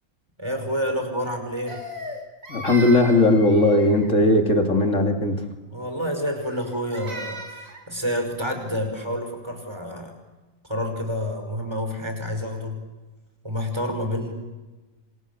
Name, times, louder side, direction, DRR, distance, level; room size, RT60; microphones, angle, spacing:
voice 1, 0.4-1.8 5.7-10.1 10.6-12.8 13.4-14.3, equal, 20° right, 5 dB, 5.6 m, -28 dB
Crying sobbing, 1.7-4.2 6.4-7.9, equal, 70° right, 4.4 m, -37 dB
voice 2, 2.5-5.4, left 2 dB, 60° left, 4 dB, 3.4 m, -18 dB
28.0 x 27.0 x 7.1 m, 1.2 s
omnidirectional pair, 1.5 m